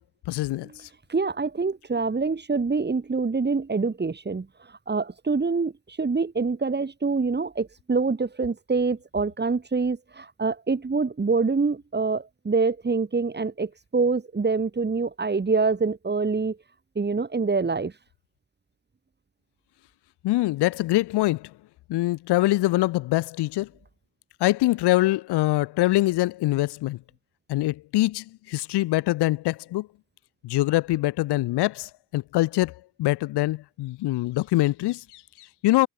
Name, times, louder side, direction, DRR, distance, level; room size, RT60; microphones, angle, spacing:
voice 1, 0.3-0.7 20.2-21.5 21.9-23.7 24.4-27.0 27.5-29.9 30.4-35.9, left 17 dB, 80° left, 4.9 m, -24 dB
voice 2, 1.1-4.5 4.9-16.6 17.0-17.9, right 4 dB, 25° right, 6.0 m, -25 dB
supercardioid pair, 85°, 39 cm